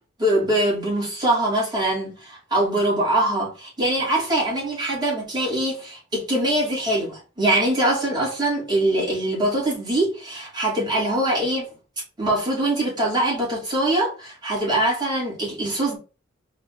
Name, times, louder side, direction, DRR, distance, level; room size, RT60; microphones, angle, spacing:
voice 1, 0.2-11.7 12.2-16.0, right 1 dB, 25° right, 2.7 m, -23 dB
4.6 x 2.9 x 3.9 m
head